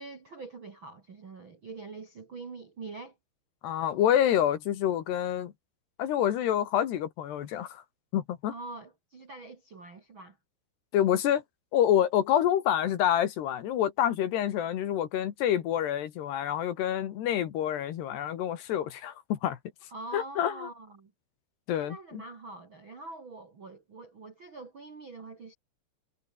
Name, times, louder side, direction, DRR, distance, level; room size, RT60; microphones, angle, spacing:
voice 1, 0.0-3.2 8.5-10.4 19.9-21.1 21.7-25.5, right 3 dB, 45° right, 1.7 m, -44 dB
voice 2, 3.6-5.5 6.0-7.8 8.1-8.5 10.9-11.4 11.7-19.6 20.1-20.5 21.7-22.0, left 10 dB, 65° left, 3.5 m, -27 dB
omnidirectional pair, 5.5 m